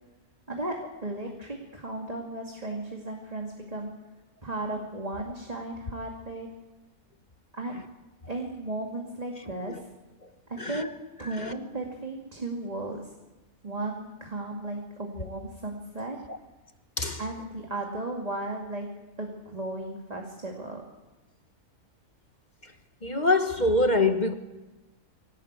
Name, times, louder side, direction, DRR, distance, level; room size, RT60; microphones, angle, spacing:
voice 1, 0.5-3.9 4.4-6.5 7.5-7.8 8.3-9.9 10.5-10.9 11.2-13.1 13.6-16.2 17.2-18.9 19.2-20.9, right 2 dB, 25° right, 2.4 m, -35 dB
voice 2, 10.6-10.9 11.4-11.5 17.0-17.2 22.6-22.7 23.0-24.3, left 2 dB, 30° left, 1.3 m, -25 dB
24.5 x 18.0 x 8.3 m
omnidirectional pair, 1.5 m